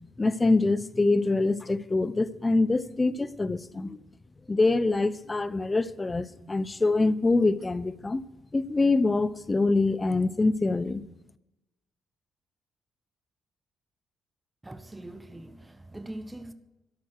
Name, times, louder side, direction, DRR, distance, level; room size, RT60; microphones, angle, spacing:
voice 1, 0.2-4.0 4.5-8.2 8.5-11.0, left 3 dB, 20° left, 0.6 m, -25 dB
voice 2, 14.6-16.5, right 1 dB, 10° right, 1.0 m, -42 dB
13.5 x 11.0 x 6.5 m
cardioid pair, 90°, 0 cm